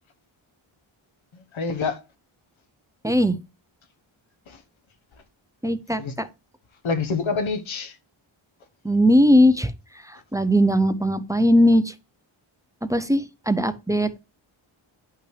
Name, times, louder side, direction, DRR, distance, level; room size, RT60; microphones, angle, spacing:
voice 1, 1.3-2.0 4.5-4.6 6.0-6.1 6.8-8.0, left 4 dB, 65° left, 1.1 m, -27 dB
voice 2, 3.0-3.4 5.6-6.3 8.8-9.7 10.1-11.9 12.8-14.2, equal, 5° right, 0.4 m, -19 dB
9.7 x 5.6 x 3.1 m
wide cardioid pair, 155°, 50 cm